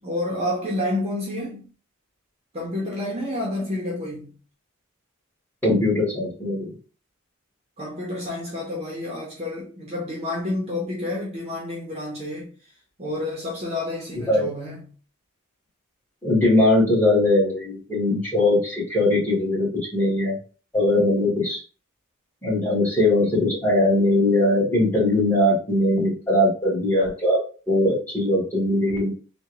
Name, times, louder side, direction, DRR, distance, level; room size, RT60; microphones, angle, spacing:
voice 1, 0.0-1.7 2.5-4.3 7.8-12.5 13.0-14.9, left 1 dB, 30° right, 1.0 m, -29 dB
voice 2, 5.6-6.7 14.3-14.5 16.2-20.4 20.7-21.6 22.4-27.4 27.7-29.1, left 1 dB, 10° left, 1.7 m, -20 dB
3.5 x 2.4 x 3.0 m
head